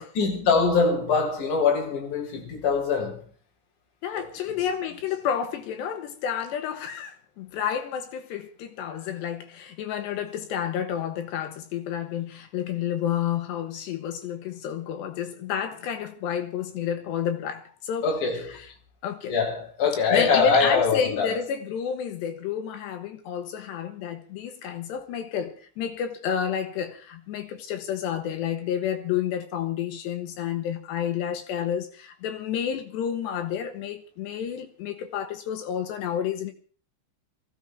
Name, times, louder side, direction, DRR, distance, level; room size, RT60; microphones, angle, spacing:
voice 1, 0.2-3.2 4.1-4.3 18.0-18.6 19.3-21.3, left 5 dB, 40° left, 5.2 m, -23 dB
voice 2, 4.0-18.1 19.0-19.3 20.1-36.5, left 8 dB, 70° left, 3.2 m, -30 dB
20.0 x 15.5 x 4.5 m
omnidirectional pair, 5.5 m